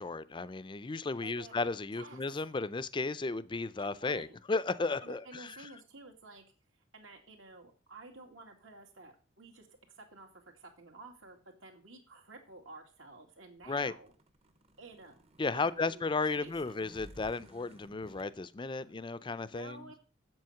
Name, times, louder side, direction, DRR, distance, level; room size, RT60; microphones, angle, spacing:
voice 1, 0.0-5.5 13.7-13.9 15.4-20.0, left 3 dB, 25° left, 0.4 m, -34 dB
voice 2, 1.2-1.5 1.9-2.2 3.8-4.4 5.0-6.4 6.9-14.1 14.8-15.1 15.5-16.7 18.8-19.0 19.5-20.0, right 3 dB, 80° right, 2.4 m, -52 dB
sound 1, 13.6-18.3, right 1 dB, 30° right, 0.8 m, -57 dB
7.8 x 7.7 x 5.7 m
head